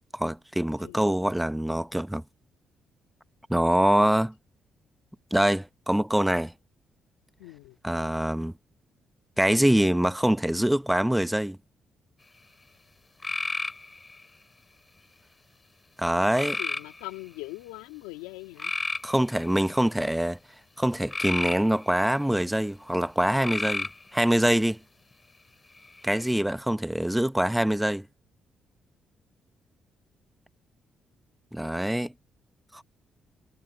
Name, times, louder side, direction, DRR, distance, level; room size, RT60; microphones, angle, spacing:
voice 1, 0.1-2.2 3.5-4.3 5.3-6.5 7.8-8.5 9.4-11.6 16.0-16.6 19.0-20.4 20.8-24.8 26.0-28.1 31.5-32.1 32.7-32.8, right 1 dB, 5° right, 1.0 m, -24 dB
voice 2, 7.4-7.8 16.4-18.7, left 21 dB, 90° left, 2.5 m, -41 dB
sound 1, 13.2-14.2 16.3-17.2 18.6-19.8 21.1-22.2 23.4-24.1 25.8-26.3, left 3 dB, 25° left, 4.2 m, -32 dB
hypercardioid pair, 50°, 0 cm